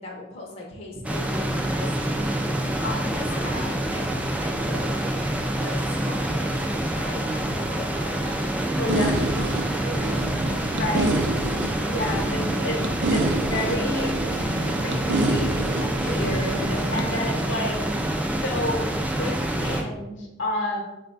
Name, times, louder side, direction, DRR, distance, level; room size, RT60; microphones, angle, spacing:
voice 1, 0.0-2.3 2.8-4.1 4.4-4.9 5.6-10.2 16.0-16.5, left 1 dB, 30° left, -3 dB, 0.6 m, -38 dB
sound 1, 1.0-19.8, right 1 dB, 5° right, 0.3 m, -27 dB
voice 2, 2.8-3.5 8.7-9.2 10.7-11.1 11.9-12.8 13.1-14.2 14.8-17.7 18.4-18.8 19.1-20.8, left 1 dB, 70° left, 0 dB, 0.9 m, -30 dB
sound 2, 8.9-17.0, right 2 dB, 65° right, 0.5 m, -27 dB
4.2 x 2.2 x 3.9 m, 1.0 s
head